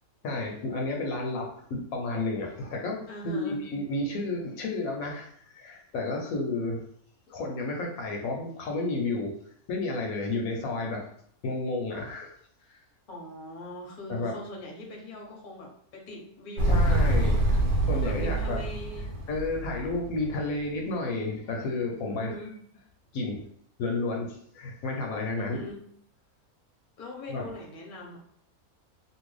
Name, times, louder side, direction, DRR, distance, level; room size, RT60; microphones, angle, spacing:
voice 1, 0.2-6.8 7.3-9.3 9.7-11.0 11.4-12.3 14.1-14.4 16.7-17.6 17.8-18.6 19.3-22.4 23.1-23.5 23.8-25.6 27.3-27.5, left 2 dB, 75° left, 1 dB, 1.0 m, -31 dB
voice 2, 3.1-3.6 12.6-17.6 17.9-19.1 22.1-22.5 25.4-25.8 27.0-28.2, left 1 dB, 45° left, -1 dB, 0.7 m, -42 dB
Motorcycle, 16.6-20.5, right 1 dB, 55° right, 0.8 m, -26 dB
2.8 x 2.6 x 3.1 m, 0.64 s
omnidirectional pair, 1.6 m